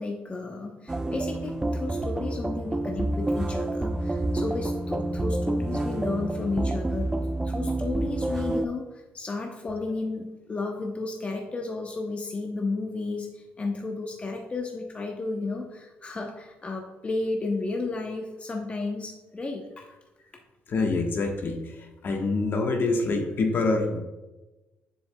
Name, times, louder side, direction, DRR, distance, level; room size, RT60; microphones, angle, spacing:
voice 1, 0.0-7.2 7.4-19.9, left 3 dB, 30° left, 2 dB, 0.7 m, -33 dB
sound 1, 0.9-8.7, right 1 dB, 15° right, 0.4 m, -28 dB
voice 2, 20.7-24.0, left 3 dB, 55° left, 3 dB, 1.1 m, -26 dB
7.1 x 6.9 x 2.2 m, 1.1 s
cardioid pair, 80°, 4 cm